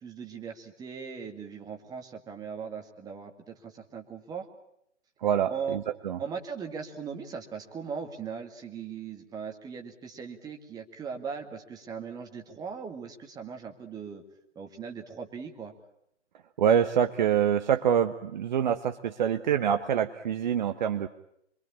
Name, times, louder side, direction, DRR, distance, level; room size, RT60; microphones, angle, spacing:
voice 1, 0.0-4.5 5.5-5.8 6.2-14.2 14.6-15.7, right 6 dB, 10° right, 4 dB, 2.0 m, -39 dB
voice 2, 5.2-6.2 16.6-21.1, right 8 dB, 40° right, 7 dB, 1.1 m, -25 dB
25.5 x 23.5 x 8.6 m, 0.74 s
figure-of-eight pair, 125°, 36 cm